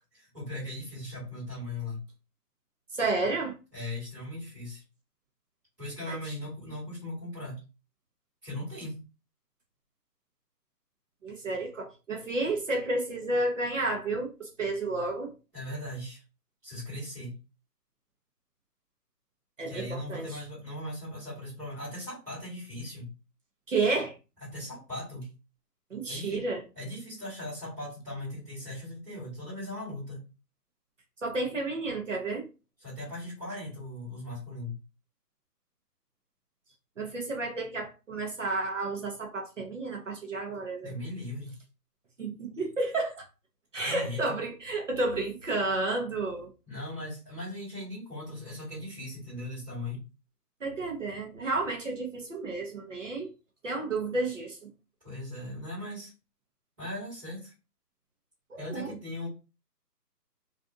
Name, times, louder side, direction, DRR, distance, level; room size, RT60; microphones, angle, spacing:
voice 1, 0.0-2.0 3.7-4.8 5.8-7.6 8.4-9.0 15.5-16.2 16.6-17.3 19.6-23.1 24.4-25.3 26.1-26.4 26.7-30.2 32.8-34.8 40.8-41.5 43.8-44.2 46.7-50.0 55.0-56.1 56.8-57.5 58.6-59.3, left 1 dB, 10° right, 1.3 m, -38 dB
voice 2, 2.9-3.5 6.1-6.2 11.2-15.3 19.6-20.3 23.7-24.1 25.9-26.6 31.2-32.5 37.0-40.9 42.2-43.3 43.7-46.5 50.6-53.3 53.6-54.7 58.5-58.9, right 2 dB, 50° right, 0.8 m, -31 dB
2.5 x 2.5 x 2.4 m
hypercardioid pair, 170°, 49 cm